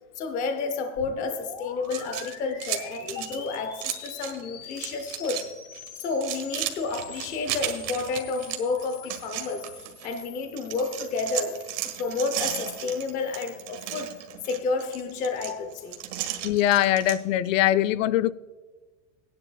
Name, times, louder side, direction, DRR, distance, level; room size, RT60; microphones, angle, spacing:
voice 1, 0.2-5.5 6.0-9.7 10.0-14.2 14.4-16.0, left 4 dB, 20° left, 0.6 m, -30 dB
sound 1, 0.9-14.3, left 7 dB, 65° left, 2.4 m, -46 dB
sound 2, 1.8-4.4 4.7-5.5 5.7-10.2 10.6-17.2, right 13 dB, 70° right, 1.7 m, -34 dB
voice 2, 16.4-18.3, left 13 dB, 80° left, 0.6 m, -22 dB
18.0 x 10.5 x 2.2 m
supercardioid pair, 170°, 38 cm